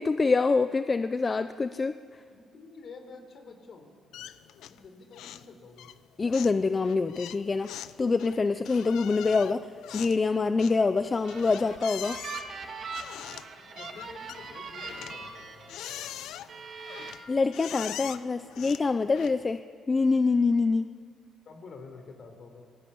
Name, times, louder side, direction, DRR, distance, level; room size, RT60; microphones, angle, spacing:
voice 1, 0.0-1.9 6.2-12.2 17.3-19.6 19.9-20.9, left 4 dB, 30° left, 11 dB, 0.7 m, -25 dB
voice 2, 2.3-3.9 4.6-5.9 13.6-15.6 21.4-22.7, left 4 dB, 55° left, 6 dB, 4.5 m, -48 dB
sound 1, 4.1-4.9 5.1-5.5 5.8-19.6, left 11 dB, 85° left, 0.8 m, -43 dB
sound 2, 11.0-16.1 16.5-17.1, right 5 dB, 55° right, 3.8 m, -41 dB
27.5 x 20.0 x 8.6 m, 2.2 s
cardioid pair, 90°, 0 cm